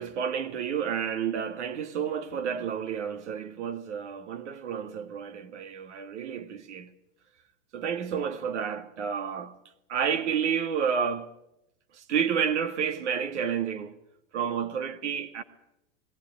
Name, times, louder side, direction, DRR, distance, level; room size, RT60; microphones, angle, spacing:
voice 1, 0.0-6.9 7.7-9.5 9.9-11.3 11.9-14.0 14.3-15.4, right 7 dB, 80° right, 2.1 m, -30 dB
20.5 x 16.5 x 9.6 m
supercardioid pair, 170°, 35 cm